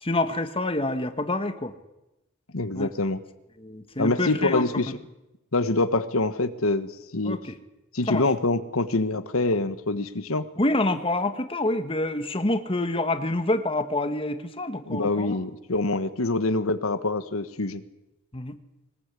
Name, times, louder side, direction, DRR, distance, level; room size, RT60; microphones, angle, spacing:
voice 1, 0.0-1.7 2.7-2.9 3.6-4.9 7.2-7.5 8.1-8.2 10.6-15.4 18.3-18.5, left 2 dB, 25° left, 9 dB, 1.4 m, -27 dB
voice 2, 2.5-3.2 4.0-5.0 5.5-7.4 7.9-10.5 14.9-17.8, left 2 dB, 85° left, 11 dB, 1.3 m, -25 dB
22.5 x 20.0 x 8.3 m, 0.95 s
head